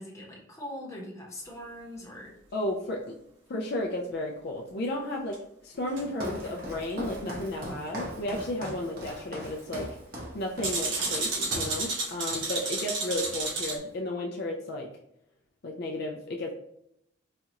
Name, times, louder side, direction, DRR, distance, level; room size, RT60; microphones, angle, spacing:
voice 1, 0.0-2.3, left 1 dB, 15° left, -4 dB, 0.9 m, -41 dB
voice 2, 2.5-3.2 3.5-9.9 10.3-14.9 15.6-16.5, left 1 dB, 55° left, 0 dB, 0.4 m, -33 dB
sound 1, 5.3-5.4 6.0-6.1 8.6-8.7 10.6-13.8, right 3 dB, 75° right, 1.1 m, -31 dB
Walk footsteps, 5.9-11.8 12.3-12.6 12.8-13.7, equal, 50° right, 0.8 m, -40 dB
4.2 x 2.4 x 2.8 m, 0.77 s
head